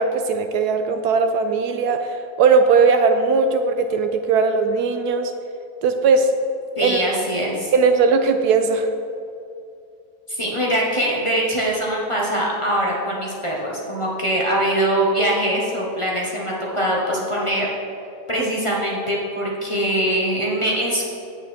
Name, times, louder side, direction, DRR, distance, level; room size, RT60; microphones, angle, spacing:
voice 1, 0.0-5.3 5.8-6.3 6.8-7.0 7.7-8.9, right 4 dB, 75° right, 7 dB, 1.1 m, -18 dB
voice 2, 6.8-7.7 10.3-17.7 18.3-21.0, right 1 dB, 20° left, -4 dB, 1.2 m, -22 dB
8.4 x 8.1 x 4.4 m, 2.5 s
omnidirectional pair, 1.8 m